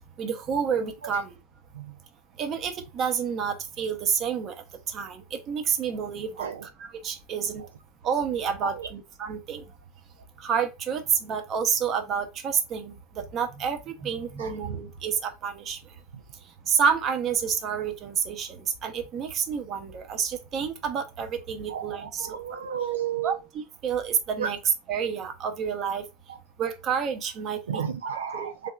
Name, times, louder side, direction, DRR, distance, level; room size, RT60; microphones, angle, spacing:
voice 1, 0.2-1.4 2.4-4.5 4.9-6.5 6.8-7.6 8.0-9.6 10.4-15.8 16.7-22.4 23.2-26.0 26.6-27.8 28.3-28.7, right 7 dB, 40° right, 0.8 m, -29 dB
voice 2, 21.7-23.4 24.4-24.5 27.7-28.7, right 8 dB, 80° right, 0.4 m, -32 dB
3.4 x 3.1 x 2.4 m
hypercardioid pair, 85°, 0 cm